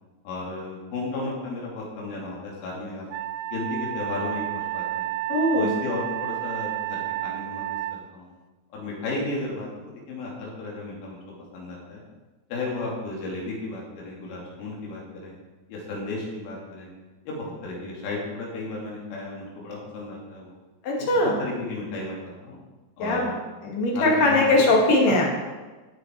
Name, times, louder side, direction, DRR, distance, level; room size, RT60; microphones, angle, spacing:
voice 1, 0.3-3.1 3.5-5.1 5.5-8.3 8.7-11.2 11.5-12.0 12.5-15.3 15.7-16.9 17.3-20.5 21.0-22.6 23.0-23.3 23.9-24.7 25.1-25.3, left 2 dB, 85° left, -3 dB, 5.3 m, -34 dB
Wind instrument woodwind instrument, 3.1-8.0, right 16 dB, 85° right, 2.9 m, -31 dB
voice 2, 5.3-5.7 20.8-21.3 23.0-23.3 23.6-25.2, left 2 dB, 55° left, -1 dB, 3.1 m, -20 dB
17.5 x 6.9 x 4.6 m, 1.2 s
omnidirectional pair, 5.6 m